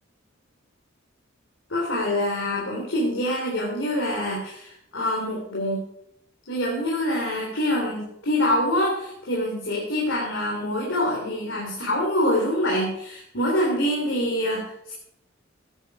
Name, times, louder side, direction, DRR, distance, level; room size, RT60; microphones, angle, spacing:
voice 1, 1.7-5.9 6.5-14.9, left 1 dB, 75° left, -3 dB, 3.6 m, -25 dB
15.0 x 10.0 x 4.8 m, 0.75 s
head